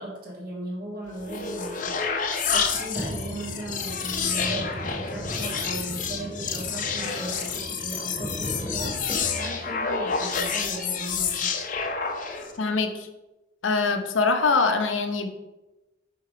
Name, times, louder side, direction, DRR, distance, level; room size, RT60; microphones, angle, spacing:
voice 1, 0.0-1.9 2.5-11.5, right 1 dB, 50° right, -2 dB, 1.7 m, -37 dB
sound 1, 1.1-12.6, left 6 dB, 45° left, 0.6 m, -29 dB
sound 2, 3.0-9.7, equal, 5° left, 1.2 m, -37 dB
voice 2, 12.6-13.1 13.6-15.3, left 4 dB, 90° left, 6 dB, 0.7 m, -23 dB
5.7 x 3.9 x 5.0 m, 1.0 s
head